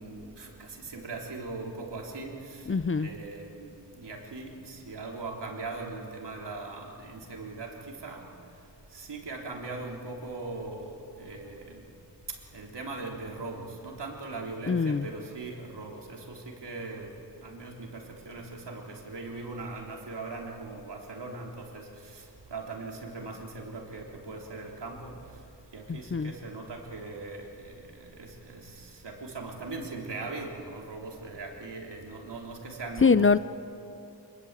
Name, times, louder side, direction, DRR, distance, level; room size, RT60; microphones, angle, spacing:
voice 1, 0.0-2.7 3.0-3.7 3.9-8.2 8.9-11.8 12.5-17.1 17.4-22.2 22.5-25.1 25.7-33.3, right 3 dB, 75° right, 0 dB, 3.6 m, -40 dB
voice 2, 2.7-3.1 14.7-15.1 25.9-26.3 33.0-33.4, left 5 dB, 30° left, 14 dB, 0.5 m, -23 dB
24.5 x 22.0 x 8.3 m, 2.8 s
wide cardioid pair, 130°, 41 cm